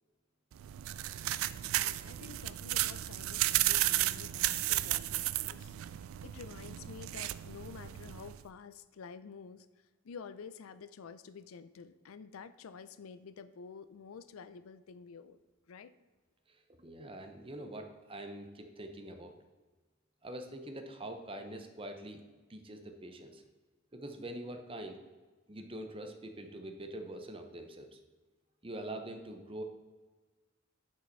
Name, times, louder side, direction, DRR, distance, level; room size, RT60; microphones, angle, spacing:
sound 1, 0.5-8.4, right 15 dB, 80° right, 0.3 m, -34 dB
voice 1, 1.6-15.4 15.7-15.9, left 5 dB, 90° left, 13 dB, 0.4 m, -50 dB
voice 2, 16.5-19.3 20.2-22.2 22.5-23.4 23.9-25.0 25.5-28.0 28.6-29.6, right 1 dB, 25° right, 6 dB, 0.7 m, -44 dB
9.7 x 5.6 x 4.0 m, 1.3 s
head